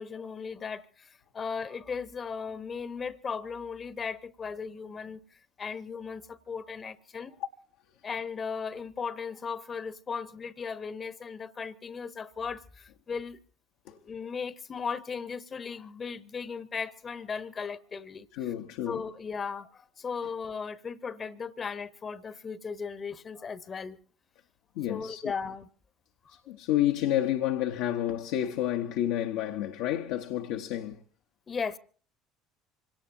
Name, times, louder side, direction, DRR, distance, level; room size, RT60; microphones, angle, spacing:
voice 1, 0.0-5.2 5.6-7.4 8.0-13.4 13.9-18.5 18.9-24.0 24.9-25.7 26.4-26.6 31.5-31.8, left 5 dB, 35° left, 0.9 m, -37 dB
voice 2, 18.3-19.0 24.8-25.3 26.5-31.0, left 12 dB, 65° left, 0.8 m, -30 dB
26.0 x 17.5 x 2.6 m
figure-of-eight pair, 60°, 0 cm